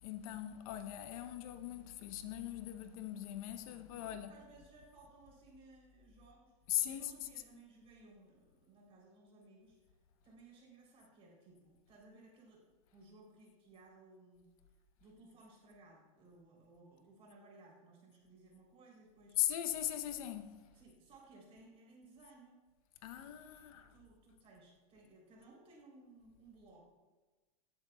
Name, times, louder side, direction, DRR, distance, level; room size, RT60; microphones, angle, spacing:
voice 1, 0.0-4.3 6.7-7.1 19.4-20.5 23.0-23.9, left 12 dB, 65° left, 0.8 m, -39 dB
voice 2, 3.9-6.5 6.9-9.8 10.2-14.5 15.0-19.4 20.7-22.6 23.7-26.9, right 2 dB, 30° right, 3.2 m, -60 dB
15.5 x 7.4 x 2.3 m
supercardioid pair, 145°, 19 cm